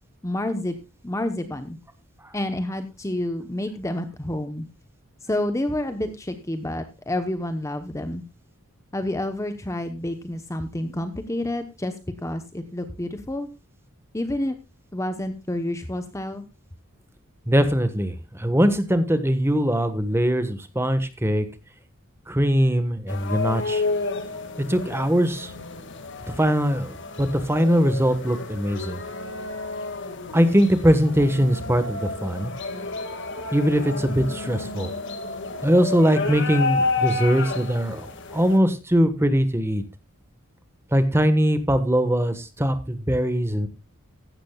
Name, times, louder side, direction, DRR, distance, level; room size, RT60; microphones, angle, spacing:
voice 1, 0.2-0.8 1.0-1.8 2.3-4.7 5.2-8.2 8.9-11.9 12.2-13.5 14.1-14.6 14.9-16.4, left 1 dB, 15° left, 9 dB, 0.9 m, -29 dB
voice 2, 17.5-21.4 22.3-23.8 24.7-25.5 26.4-29.0 30.3-32.5 33.5-34.9 35.6-39.8 40.9-43.7, equal, 10° right, 10 dB, 1.3 m, -21 dB
sound 1, 23.1-38.6, left 3 dB, 55° left, 1.9 m, -31 dB
16.0 x 12.5 x 2.3 m, 0.27 s
head